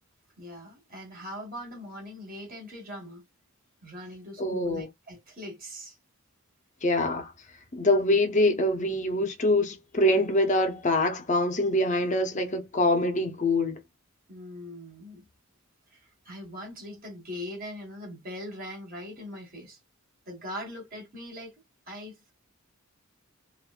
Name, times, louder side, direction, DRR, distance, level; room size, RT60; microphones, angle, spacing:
voice 1, 0.4-3.2 3.8-6.0 14.3-15.3 15.9-19.8 20.3-22.3, left 1 dB, 40° right, 1.8 m, -41 dB
voice 2, 4.4-4.9 6.8-7.3 7.7-13.8, left 1 dB, 35° left, 0.7 m, -24 dB
3.6 x 2.5 x 2.4 m
head